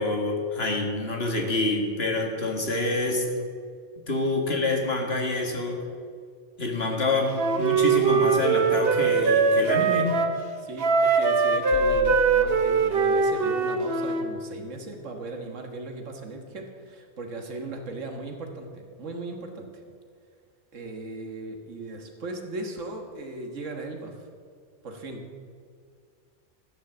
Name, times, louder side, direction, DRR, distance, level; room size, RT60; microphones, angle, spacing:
voice 1, 0.0-3.3 4.1-5.8 6.6-10.1, left 2 dB, 55° left, 2 dB, 2.0 m, -27 dB
Wind instrument woodwind instrument, 7.3-10.3 10.8-14.3, right 5 dB, 55° right, 1.1 m, -22 dB
voice 2, 9.7-10.1 10.6-19.7 20.7-24.3 24.8-25.3, right 2 dB, 80° right, 3 dB, 1.8 m, -37 dB
sound 1, 11.7-13.5, left 6 dB, 90° left, 1.6 m, -38 dB
13.0 x 9.9 x 7.1 m, 2.1 s
omnidirectional pair, 1.3 m